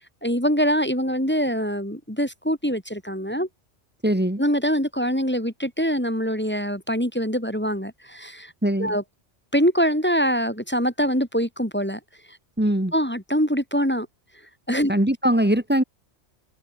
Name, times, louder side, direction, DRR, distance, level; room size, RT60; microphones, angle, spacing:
voice 1, 0.2-3.5 4.4-8.5 8.8-9.0 9.5-12.0 12.9-14.1 14.7-14.9, equal, 10° left, 2.2 m, -24 dB
voice 2, 4.0-4.4 8.6-8.9 12.6-12.9 14.9-15.8, right 1 dB, 10° right, 1.3 m, -21 dB
open air
omnidirectional pair, 1.2 m